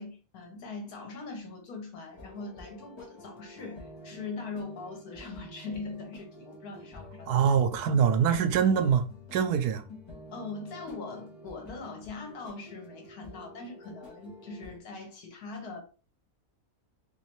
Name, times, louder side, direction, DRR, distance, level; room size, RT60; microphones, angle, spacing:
voice 1, 0.0-7.4 10.3-15.8, left 3 dB, 75° left, 1.4 m, -41 dB
sound 1, 2.1-14.8, left 1 dB, 25° left, 0.6 m, -49 dB
voice 2, 7.3-9.0 9.3-9.8, right 7 dB, 85° right, 1.1 m, -24 dB
3.1 x 3.0 x 2.9 m
omnidirectional pair, 1.6 m